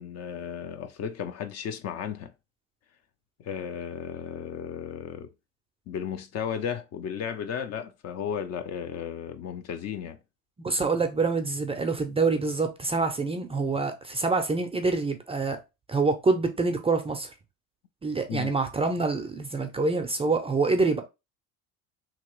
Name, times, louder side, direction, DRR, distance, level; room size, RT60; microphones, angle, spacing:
voice 1, 0.0-2.3 3.4-5.3 5.9-10.2 18.3-18.5, left 8 dB, 40° left, 0.5 m, -34 dB
voice 2, 10.6-15.6 15.9-17.3 18.0-21.0, right 3 dB, 15° right, 0.4 m, -26 dB
2.9 x 2.9 x 3.0 m
hypercardioid pair, 80°, 39 cm